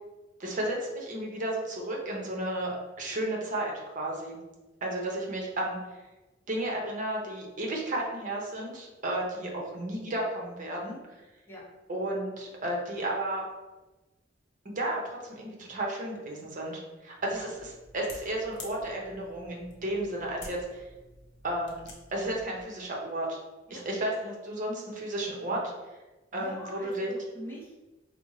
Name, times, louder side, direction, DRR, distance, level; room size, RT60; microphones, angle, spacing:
voice 1, 0.4-4.4 4.8-5.8 6.5-11.0 11.9-13.4 14.6-17.5 17.9-20.9 21.4-23.4 23.7-25.6 26.3-27.1, right 1 dB, 40° right, -1 dB, 0.8 m, -33 dB
sound 1, 17.3-22.6, left 2 dB, 60° left, 0.8 m, -50 dB
voice 2, 26.3-28.0, equal, 10° left, -6 dB, 1.0 m, -44 dB
5.0 x 2.1 x 3.1 m, 1.1 s
head